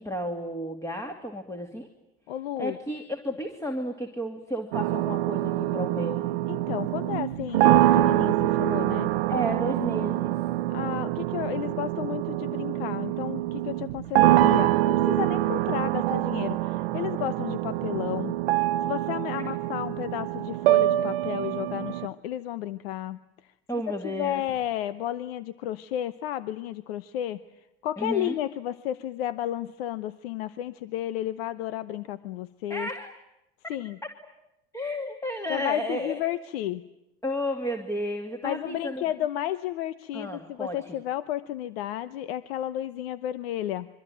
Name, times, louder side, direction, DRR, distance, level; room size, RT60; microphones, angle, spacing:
voice 1, 0.0-1.9 2.6-6.2 9.3-10.4 19.3-19.4 23.7-24.4 28.0-28.3 32.7-33.1 34.7-36.2 37.2-39.0 40.1-41.0, equal, 10° left, 5 dB, 2.5 m, -32 dB
voice 2, 2.3-2.8 6.5-9.1 10.7-32.9 33.7-34.0 35.5-36.8 38.4-43.9, left 12 dB, 85° left, 15 dB, 0.9 m, -32 dB
sound 1, 4.7-22.1, right 15 dB, 85° right, 1.0 m, -25 dB
26.0 x 23.5 x 9.2 m, 0.90 s
supercardioid pair, 100°, 29 cm